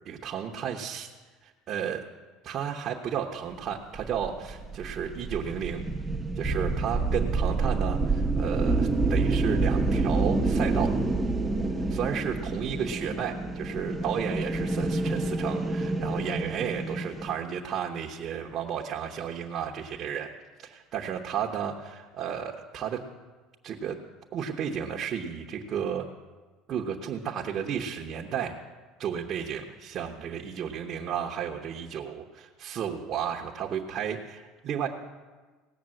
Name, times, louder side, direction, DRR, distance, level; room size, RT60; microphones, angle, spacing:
voice 1, 0.0-1.1 1.4-2.0 2.4-5.9 6.4-10.9 11.9-20.3 20.6-23.0 23.6-24.0 24.3-26.1 26.7-28.6 29.0-34.9, right 8 dB, 40° right, 1 dB, 1.0 m, -33 dB
sound 1, 4.0-17.3, right 3 dB, 10° right, 0.9 m, -28 dB
17.5 x 6.6 x 7.8 m, 1.3 s
cardioid pair, 130°, 0 cm